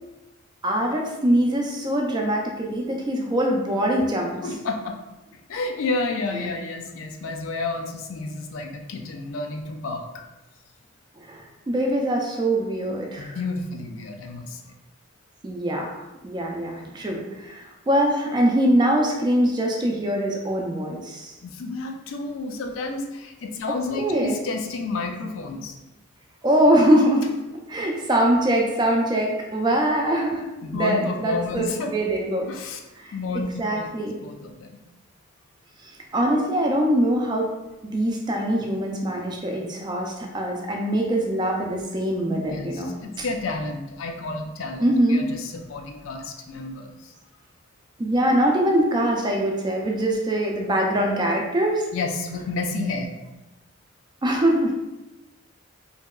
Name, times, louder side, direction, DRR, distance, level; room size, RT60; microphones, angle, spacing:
voice 1, 0.6-4.4 6.5-6.6 11.2-13.4 15.4-15.9 16.2-21.3 24.0-24.4 26.4-27.3 27.7-30.4 30.7-32.5 33.0-34.1 36.1-37.5 37.8-43.2 44.8-45.3 48.0-51.8 54.2-54.7, right 1 dB, 20° right, 0 dB, 0.3 m, -23 dB
voice 2, 4.4-5.0 5.5-10.3 13.2-14.8 21.4-25.8 30.6-31.9 32.5-32.8 33.1-33.9 34.2-34.8 42.5-44.8 45.1-47.1 51.9-53.1, left 3 dB, 80° left, 4 dB, 0.3 m, -30 dB
2.7 x 2.2 x 2.2 m, 1.0 s
head